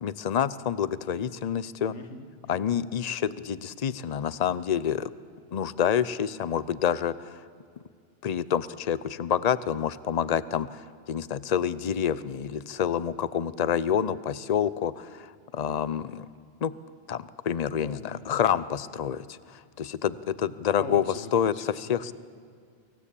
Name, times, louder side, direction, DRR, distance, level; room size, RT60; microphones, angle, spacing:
voice 1, 0.0-1.9 2.5-5.1 5.5-7.4 8.2-16.3 16.6-16.7 17.1-21.0 21.3-21.5 21.9-22.1, left 8 dB, 40° left, 16 dB, 0.7 m, -28 dB
voice 2, 1.9-2.7 17.7-18.2 20.8-22.0, left 3 dB, 90° left, 7 dB, 2.0 m, -42 dB
25.0 x 16.0 x 8.5 m, 2.2 s
omnidirectional pair, 1.2 m